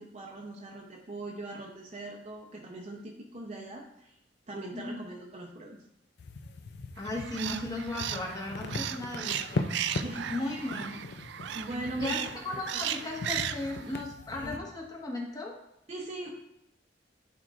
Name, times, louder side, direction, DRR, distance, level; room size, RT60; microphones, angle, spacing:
voice 1, 0.0-4.2 4.5-5.8 10.0-10.6 11.5-12.8 14.3-14.6 15.9-16.3, right 2 dB, 40° right, -2 dB, 0.8 m, -41 dB
sound 1, 6.2-14.6, left 3 dB, 65° left, 0.5 m, -39 dB
voice 2, 7.0-9.7 10.3-11.0 11.7-15.6, left 2 dB, 20° left, -2 dB, 1.5 m, -36 dB
sound 2, 7.0-14.0, right 10 dB, 70° right, 0.4 m, -36 dB
10.5 x 4.5 x 2.5 m, 0.83 s
head